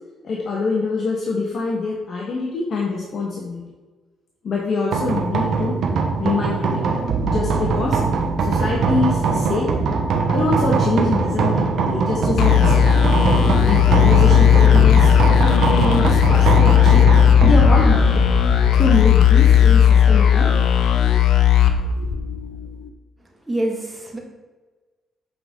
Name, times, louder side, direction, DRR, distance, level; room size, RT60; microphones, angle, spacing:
voice 1, 0.2-3.6 4.4-5.8 6.2-7.0 7.2-8.0 8.4-9.7 10.3-13.0 13.6-17.1 17.4-18.3 18.8-20.5, left 3 dB, 55° left, -2 dB, 1.3 m, -24 dB
sound 1, 4.9-22.1, right 4 dB, 70° right, 1.1 m, -22 dB
sound 2, 12.4-22.7, left 9 dB, 75° left, 0.6 m, -15 dB
voice 2, 23.5-24.2, right 1 dB, 15° right, 0 dB, 1.9 m, -25 dB
7.9 x 5.4 x 3.7 m, 1.3 s
cardioid pair, 90°, 0 cm